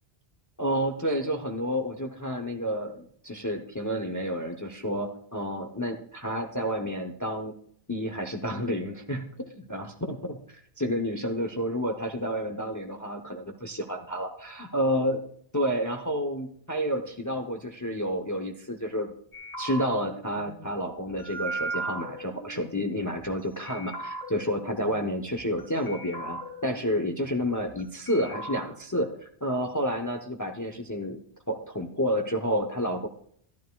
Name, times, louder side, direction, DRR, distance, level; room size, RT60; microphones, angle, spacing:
voice 1, 0.6-7.5 7.9-9.2 9.7-10.4 10.8-15.2 15.5-19.1 19.6-29.1 29.4-31.2 31.5-33.1, equal, 20° left, 4 dB, 0.6 m, -30 dB
sound 1, 19.3-23.3 23.7-25.6 25.9-27.8 28.1-28.7, right 2 dB, 35° left, 1.7 m, -38 dB
13.0 x 11.5 x 2.3 m, 0.62 s
omnidirectional pair, 1.1 m